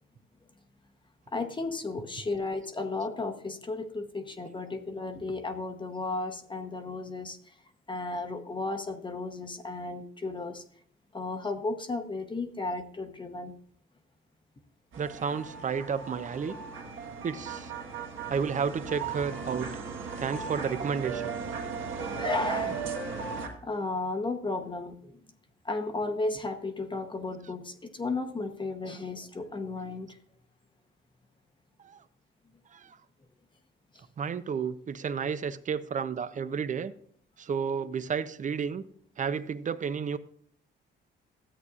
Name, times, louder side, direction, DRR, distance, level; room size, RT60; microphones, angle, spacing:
voice 1, 1.3-7.6 7.9-10.6 11.1-13.5 22.1-22.8 23.6-25.2 25.6-30.2 33.9-34.0, left 3 dB, 25° left, 5 dB, 0.9 m, -34 dB
sound 1, 14.9-23.5, right 5 dB, 75° right, 1.8 m, -36 dB
voice 2, 15.0-16.6 17.2-17.7 18.3-19.7 20.2-21.4 31.8-32.0 32.7-33.0 34.2-36.9 37.4-38.9 39.2-40.2, right 6 dB, 40° right, 14 dB, 0.6 m, -31 dB
13.5 x 8.1 x 2.4 m, 0.63 s
cardioid pair, 90°, 20 cm